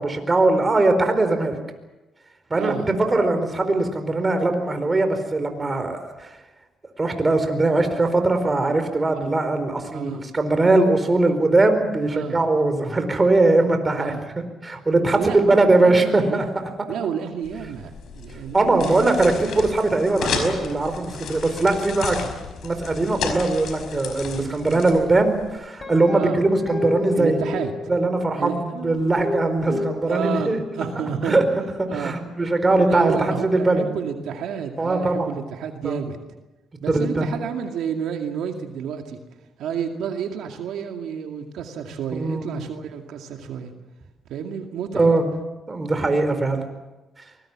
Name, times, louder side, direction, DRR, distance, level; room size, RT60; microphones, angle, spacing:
voice 1, 0.0-1.6 2.5-6.3 7.0-14.1 14.6-16.4 18.5-22.2 22.6-27.4 27.9-30.6 31.2-31.4 31.8-33.2 33.4-33.8 34.8-35.3 35.8-36.0 36.9-37.3 42.1-42.5 44.9-45.2 45.7-46.6, right 2 dB, 25° right, 7 dB, 4.5 m, -20 dB
voice 2, 2.5-2.9 9.1-9.3 9.9-10.2 12.0-12.4 14.0-14.2 15.1-16.6 16.9-19.2 20.1-20.5 22.1-22.3 26.1-26.4 27.2-28.0 28.4-29.0 29.7-31.4 31.9-32.2 32.7-36.2 36.8-39.2 39.6-43.7 44.3-45.1, right 7 dB, 80° right, 4 dB, 2.3 m, -30 dB
sound 1, 17.4-25.5, left 6 dB, 70° left, 5.1 m, -33 dB
Guitar, 25.8-28.3 29.0-30.9, left 3 dB, 30° left, 5.5 m, -30 dB
24.0 x 20.5 x 7.5 m, 1.1 s
cardioid pair, 90°, 0 cm